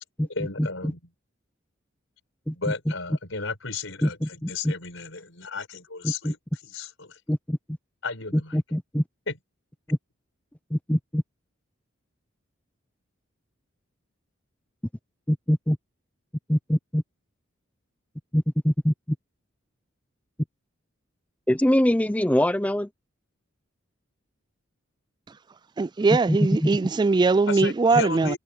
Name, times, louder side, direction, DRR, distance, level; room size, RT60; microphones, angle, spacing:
voice 1, 0.3-1.0 2.5-6.4 6.6-7.2 8.0-8.6 9.3-9.4 27.5-28.4, left 4 dB, 75° left, 5.6 m, -34 dB
voice 2, 4.0-4.7 6.2-6.3 7.3-7.6 8.5-9.0 10.7-11.2 15.3-15.8 16.5-17.0 18.3-18.9 21.5-22.9 26.3-26.7, equal, 5° left, 0.7 m, -23 dB
voice 3, 25.8-28.4, right 3 dB, 20° right, 0.3 m, -21 dB
head